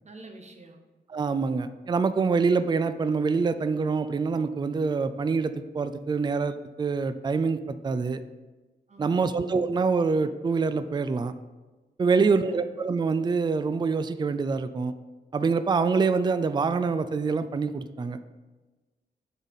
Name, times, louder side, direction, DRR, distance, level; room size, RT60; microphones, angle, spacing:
voice 1, 0.0-0.8 8.9-9.3 12.1-12.6, right 2 dB, 40° right, 3 dB, 1.0 m, -48 dB
voice 2, 1.1-8.2 9.0-11.3 12.0-14.9 15.3-18.2, right 4 dB, 25° right, 11 dB, 0.3 m, -25 dB
7.0 x 4.0 x 5.5 m, 1.2 s
wide cardioid pair, 95°, 18 cm